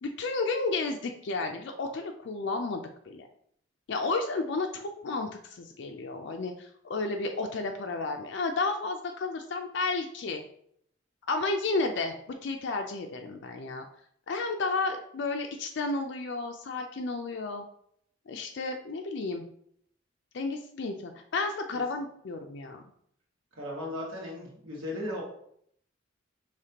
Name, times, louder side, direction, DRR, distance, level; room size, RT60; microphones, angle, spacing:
voice 1, 0.0-3.3 3.9-10.4 11.3-13.8 14.3-17.6 18.3-19.4 20.3-22.8, left 3 dB, 60° left, 4 dB, 0.4 m, -32 dB
voice 2, 23.6-25.2, left 1 dB, 90° right, -3 dB, 1.6 m, -36 dB
5.0 x 3.1 x 2.8 m, 0.68 s
head